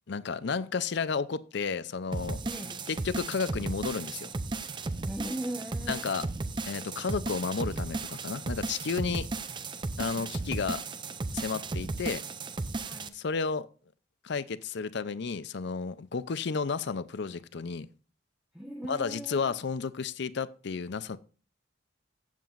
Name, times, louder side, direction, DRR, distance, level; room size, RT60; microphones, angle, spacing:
voice 1, 0.1-2.4 2.9-4.3 5.9-6.3 6.7-9.3 10.0-10.8 11.3-12.2 13.1-13.7 14.2-17.9 18.9-21.2, left 5 dB, 60° left, 0.5 m, -32 dB
sound 1, 2.1-13.1, right 3 dB, 25° right, 0.5 m, -35 dB
voice 2, 2.4-2.8 5.0-6.1 10.1-10.3 12.8-13.2 18.5-19.6, right 1 dB, 5° right, 0.9 m, -39 dB
14.5 x 7.5 x 2.5 m
head